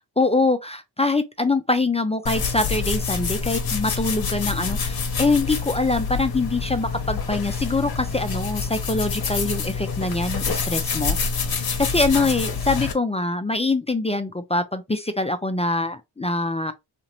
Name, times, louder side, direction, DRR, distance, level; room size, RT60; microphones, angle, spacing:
voice 1, 0.2-11.2 11.8-16.7, left 2 dB, 15° left, 0.4 m, -24 dB
sound 1, 2.3-12.9, left 5 dB, 45° left, 0.9 m, -27 dB
2.9 x 2.5 x 2.8 m
cardioid pair, 55°, 49 cm